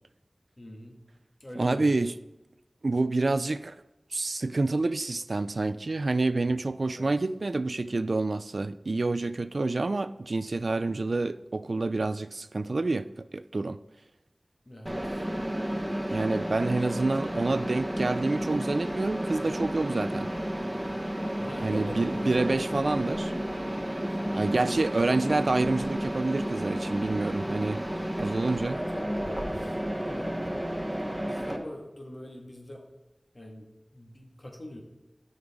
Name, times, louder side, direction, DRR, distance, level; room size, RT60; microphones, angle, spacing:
voice 1, 0.6-1.0 1.4-2.0 6.9-7.1 14.6-15.2 21.4-22.5 24.6-24.7 25.0-25.4 28.7-29.8 30.1-30.3 31.0-32.8 33.3-33.7 33.9-34.8, left 1 dB, 55° left, 1.9 m, -43 dB
voice 2, 1.6-2.1 2.8-3.8 4.1-13.8 16.1-20.3 21.6-23.3 24.3-27.8 28.2-28.8, right 3 dB, 80° right, 0.3 m, -28 dB
Mechanisms, 14.8-31.6, equal, 15° right, 1.2 m, -32 dB
13.0 x 5.3 x 3.7 m
wide cardioid pair, 45°, 0 cm